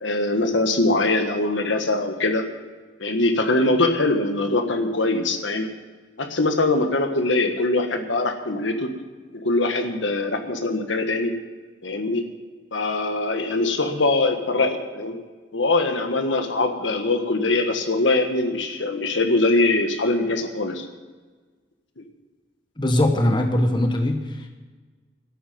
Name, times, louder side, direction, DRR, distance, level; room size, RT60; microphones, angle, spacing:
voice 1, 0.0-2.4 3.0-5.7 6.2-8.9 9.3-11.3 11.8-12.2 12.7-15.2 15.5-20.9 22.0-22.1, left 2 dB, 80° left, 6 dB, 1.5 m, -22 dB
voice 2, 22.8-24.5, left 1 dB, 25° left, 4 dB, 1.2 m, -21 dB
12.0 x 8.6 x 9.3 m, 1.4 s
head